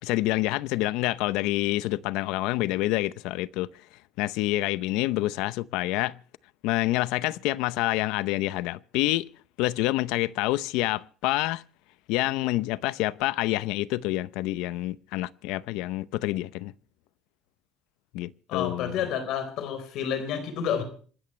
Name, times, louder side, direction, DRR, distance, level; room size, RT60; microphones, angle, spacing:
voice 1, 0.0-3.7 4.2-6.2 6.6-9.3 9.6-11.6 12.1-16.7 18.1-19.0, left 17 dB, 80° left, 0.7 m, -27 dB
voice 2, 18.5-20.8, left 8 dB, 60° left, 4.4 m, -29 dB
27.0 x 13.0 x 3.2 m
cardioid pair, 170°, 0 cm